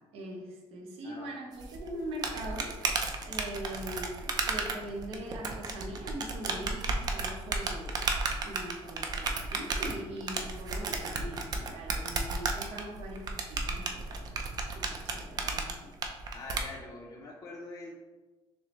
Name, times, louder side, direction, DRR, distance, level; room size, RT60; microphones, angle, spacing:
voice 1, 0.0-2.8 3.2-15.9, right 1 dB, 85° right, 1 dB, 0.8 m, -42 dB
sound 1, 1.6-16.6, right 4 dB, 40° right, 0.4 m, -33 dB
voice 2, 16.3-18.0, left 3 dB, 40° left, -3 dB, 0.5 m, -44 dB
6.1 x 2.1 x 3.0 m, 1.2 s
cardioid pair, 145°, 10 cm